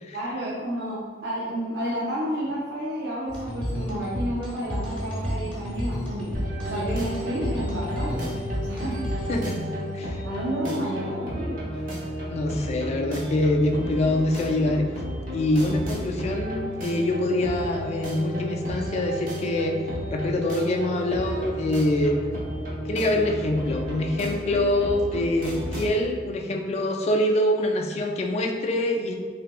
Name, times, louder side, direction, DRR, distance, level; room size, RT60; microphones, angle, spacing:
voice 1, 0.1-6.3 6.6-8.3 8.6-9.0 10.2-11.8, right 1 dB, 85° right, -7 dB, 0.6 m, -31 dB
sound 1, 3.3-9.9, equal, 5° left, 0.9 m, -31 dB
sound 2, 6.3-26.0, equal, 50° right, 0.7 m, -33 dB
voice 2, 9.3-10.2 10.6-10.8 12.3-14.9 15.3-19.8 20.1-22.2 22.9-29.1, left 1 dB, 40° left, 3 dB, 0.3 m, -25 dB
3.3 x 2.9 x 2.2 m, 1.5 s
head